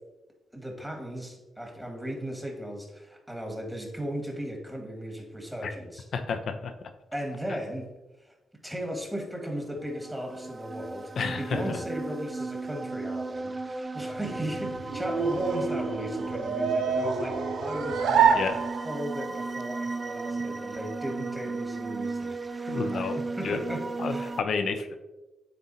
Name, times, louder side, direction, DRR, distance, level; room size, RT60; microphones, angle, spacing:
voice 1, 0.5-6.1 7.1-7.9 8.6-11.1 11.4-24.3, equal, 10° right, 2 dB, 1.8 m, -36 dB
voice 2, 6.1-6.7 11.2-11.8 18.3-18.5 22.7-23.2 23.4-23.6 24.0-25.0, left 5 dB, 65° left, 7 dB, 0.6 m, -30 dB
sound 1, 9.8-24.4, right 3 dB, 35° right, 0.4 m, -35 dB
sound 2, 14.2-19.2, right 6 dB, 80° right, 0.6 m, -27 dB
9.3 x 3.8 x 2.8 m, 1.1 s
supercardioid pair, 50°, 0 cm